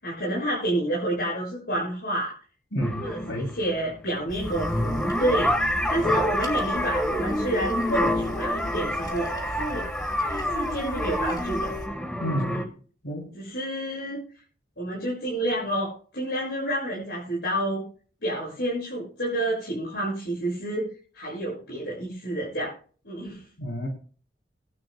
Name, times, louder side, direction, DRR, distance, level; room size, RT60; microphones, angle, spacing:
voice 1, 0.0-2.3 3.0-9.3 9.6-9.9 10.2-11.7 12.5-12.6 13.3-14.2 14.8-17.8 18.2-20.9 21.1-22.7 23.0-23.4, right 1 dB, 65° left, -5 dB, 6.7 m, -29 dB
voice 2, 2.7-3.5 12.2-12.6 13.0-13.3 23.6-23.9, equal, 85° left, 0 dB, 3.5 m, -30 dB
sound 1, 2.8-12.7, equal, 5° left, 1.4 m, -28 dB
sound 2, 4.3-11.9, left 1 dB, 25° left, 2.9 m, -37 dB
21.5 x 11.5 x 2.2 m, 0.41 s
head